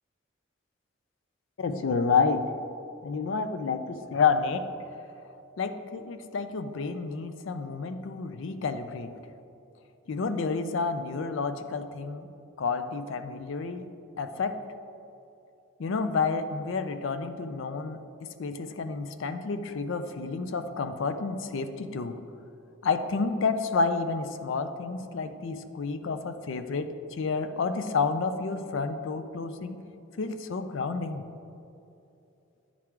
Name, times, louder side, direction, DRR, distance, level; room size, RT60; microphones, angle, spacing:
voice 1, 1.6-2.5 3.0-4.7 5.6-9.1 10.1-12.3 12.6-13.9 14.2-14.5 15.8-22.2 22.8-29.8 30.2-31.2, left 4 dB, 60° left, 9 dB, 0.4 m, -30 dB
9.7 x 3.7 x 4.5 m, 2.7 s
head